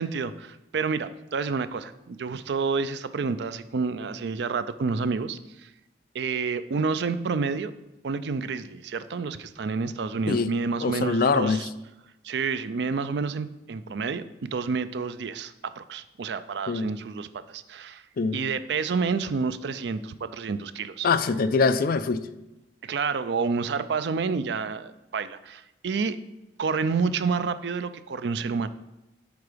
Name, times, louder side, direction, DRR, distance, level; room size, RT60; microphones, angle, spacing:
voice 1, 0.0-5.7 6.1-7.7 8.0-11.7 12.2-18.0 18.3-21.1 22.8-26.2 26.6-28.7, right 4 dB, 65° right, 0.4 m, -29 dB
voice 2, 10.8-11.6 16.7-16.9 18.2-18.4 21.0-22.2, left 4 dB, 55° left, 0.4 m, -23 dB
8.1 x 4.9 x 5.0 m
head